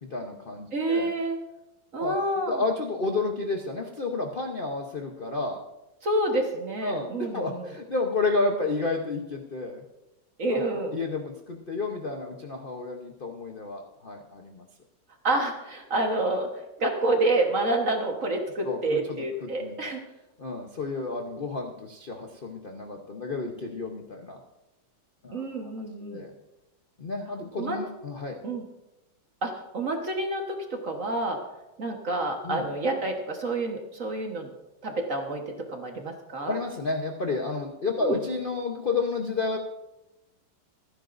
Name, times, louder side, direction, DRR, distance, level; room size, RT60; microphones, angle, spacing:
voice 1, 0.0-1.1 2.0-2.2 2.5-5.6 6.8-9.8 10.5-10.6 10.9-14.7 18.6-19.9 20.4-24.4 25.2-25.4 26.0-26.3 27.0-28.4 32.4-32.7 36.5-39.6, left 3 dB, 40° left, 2 dB, 0.7 m, -31 dB
voice 2, 0.7-1.4 1.9-2.6 6.0-7.7 10.4-10.9 15.2-16.5 16.8-20.0 25.3-26.2 27.5-27.8 28.4-28.6 29.4-31.4 31.8-34.5 34.8-36.6 38.0-38.2, right 2 dB, 40° right, 2 dB, 1.5 m, -28 dB
26.5 x 10.0 x 2.6 m, 0.98 s
omnidirectional pair, 2.3 m